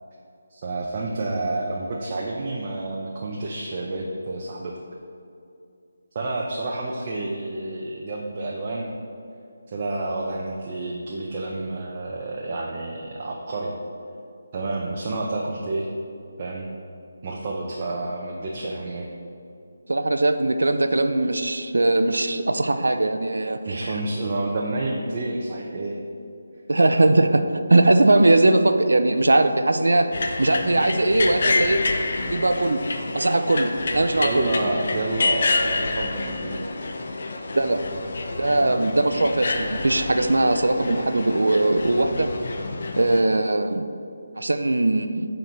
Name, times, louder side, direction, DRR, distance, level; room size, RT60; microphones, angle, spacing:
voice 1, 0.5-4.8 6.1-8.9 9.7-13.8 14.5-15.9 16.4-16.7 17.2-19.1 23.6-26.0 34.2-36.7 37.0-37.1, right 2 dB, 30° right, -2 dB, 0.6 m, -29 dB
voice 2, 19.9-23.9 26.7-30.1 30.4-31.8 32.2-32.8 33.1-34.5 37.5-37.8 38.4-42.3 43.0-43.8 44.4-45.3, right 2 dB, 85° right, 8 dB, 0.5 m, -20 dB
sound 1, 30.1-43.2, left 3 dB, 50° left, 0.6 m, -28 dB
8.2 x 4.5 x 3.9 m, 2.6 s
figure-of-eight pair, 165°, 0 cm